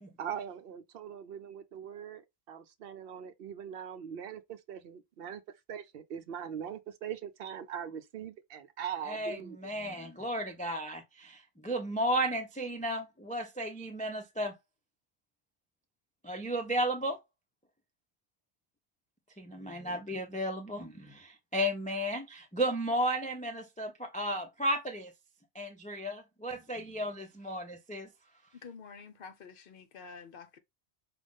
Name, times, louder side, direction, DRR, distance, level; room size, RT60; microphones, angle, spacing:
voice 1, 0.2-5.4 5.7-9.6, right 8 dB, 65° right, 0.7 m, -41 dB
voice 2, 9.0-14.5 16.2-17.2 19.4-25.1 25.5-28.1, equal, 15° left, 0.3 m, -34 dB
voice 3, 28.6-30.6, left 5 dB, 60° left, 0.8 m, -49 dB
5.1 x 2.3 x 3.5 m
omnidirectional pair, 1.1 m